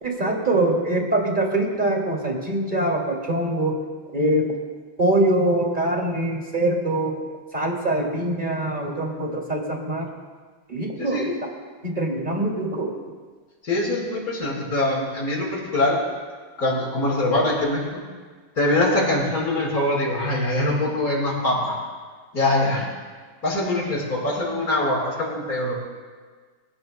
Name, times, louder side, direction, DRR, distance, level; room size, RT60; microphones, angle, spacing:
voice 1, 0.0-3.8 4.1-4.5 5.0-7.2 7.5-10.1 10.7-11.3 11.8-12.9, right 1 dB, 20° right, -1 dB, 2.5 m, -23 dB
voice 2, 11.0-11.4 13.6-16.0 16.6-18.0 18.6-21.8 22.3-22.9 23.4-25.8, left 1 dB, 45° left, -5 dB, 5.2 m, -23 dB
28.0 x 16.5 x 2.2 m, 1.5 s
omnidirectional pair, 2.3 m